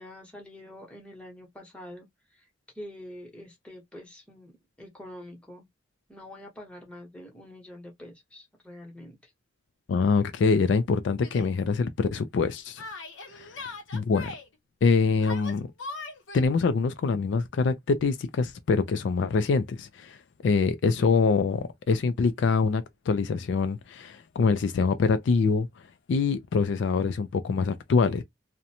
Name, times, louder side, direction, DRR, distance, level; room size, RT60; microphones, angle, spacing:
voice 1, 0.0-2.1 2.3-2.4 2.7-4.5 4.8-5.7 6.1-9.2, left 1 dB, 5° left, 0.9 m, -45 dB
voice 2, 9.9-12.8 13.3-13.7 13.9-14.3 14.8-15.7 16.3-20.2 20.4-25.7 26.1-28.2, left 4 dB, 70° left, 0.3 m, -24 dB
Yell, 11.2-11.5 12.8-14.5 15.2-16.5, left 3 dB, 90° left, 0.8 m, -40 dB
2.5 x 2.1 x 2.7 m
head